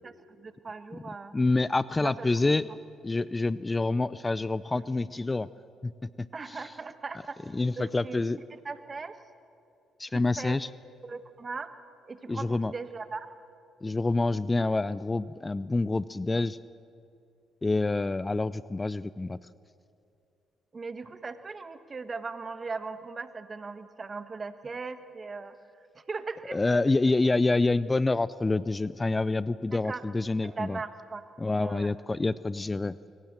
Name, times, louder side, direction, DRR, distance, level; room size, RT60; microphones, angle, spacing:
voice 1, 0.0-1.3 2.0-2.3 6.3-7.4 7.8-8.2 8.5-9.1 10.1-10.6 11.0-11.7 12.1-13.3 20.7-25.5 25.9-26.8 29.7-30.1 30.4-31.2 31.6-31.9, right 4 dB, 35° right, 11 dB, 1.5 m, -39 dB
voice 2, 1.3-2.7 3.0-5.5 5.8-6.6 7.5-8.4 10.0-10.7 12.3-12.7 13.8-16.6 17.6-19.4 26.5-30.8 31.4-33.0, left 2 dB, 25° left, 18 dB, 0.5 m, -27 dB
23.0 x 18.5 x 7.7 m, 2.5 s
hypercardioid pair, 50°, 0 cm